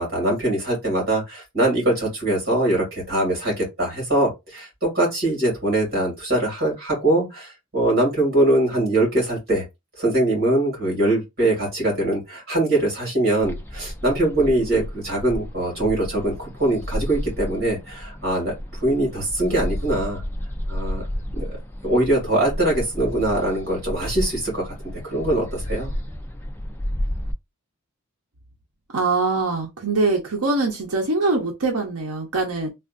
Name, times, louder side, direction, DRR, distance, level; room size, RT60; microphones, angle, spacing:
voice 1, 0.0-9.6 10.0-20.2 20.7-21.1 21.3-21.5 21.8-24.7 25.0-25.9, right 1 dB, 45° right, 2.1 m, -22 dB
sound 1, 13.4-27.3, equal, 10° left, 0.4 m, -32 dB
voice 2, 28.9-32.7, right 3 dB, 85° right, 0.8 m, -23 dB
3.4 x 2.5 x 2.5 m
head